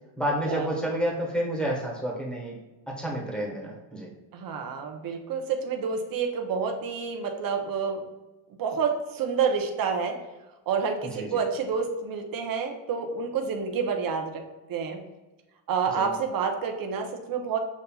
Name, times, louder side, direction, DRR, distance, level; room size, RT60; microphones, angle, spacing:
voice 1, 0.2-2.5 2.9-4.1 11.1-11.3 16.0-16.1, equal, ahead, -2 dB, 1.1 m, -29 dB
voice 2, 4.3-8.0 8.6-10.2 10.7-14.4 14.7-15.0 15.7-17.6, right 6 dB, 50° right, 4 dB, 0.7 m, -28 dB
7.2 x 2.7 x 2.3 m, 1.1 s
cardioid pair, 120°, 44 cm